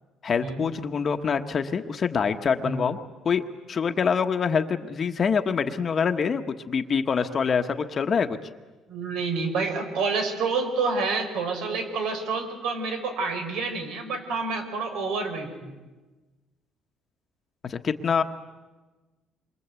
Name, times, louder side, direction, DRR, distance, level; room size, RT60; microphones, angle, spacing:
voice 1, 0.2-3.0 3.2-8.4 17.7-18.2, left 6 dB, 35° left, 6 dB, 1.2 m, -25 dB
voice 2, 8.9-15.7, right 4 dB, 80° right, 5 dB, 5.4 m, -28 dB
27.5 x 24.0 x 8.3 m, 1.2 s
cardioid pair, 135°, 0 cm